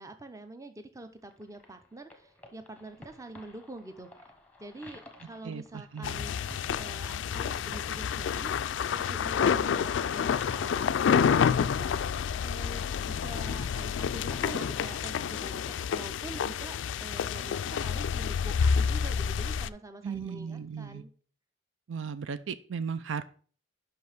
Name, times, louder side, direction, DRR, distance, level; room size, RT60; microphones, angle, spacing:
voice 1, 0.0-4.1 4.6-6.3 6.8-8.5 8.9-11.9 12.4-15.6 15.9-21.1, right 2 dB, 15° right, 8 dB, 0.7 m, -45 dB
sound 1, 1.3-18.0, left 1 dB, 10° left, 0.9 m, -53 dB
voice 2, 5.4-6.3 20.0-21.0 21.9-23.2, right 6 dB, 75° right, 13 dB, 0.5 m, -36 dB
sound 2, 6.0-19.7, left 7 dB, 70° left, 0.3 m, -29 dB
5.6 x 5.3 x 5.9 m, 0.43 s
head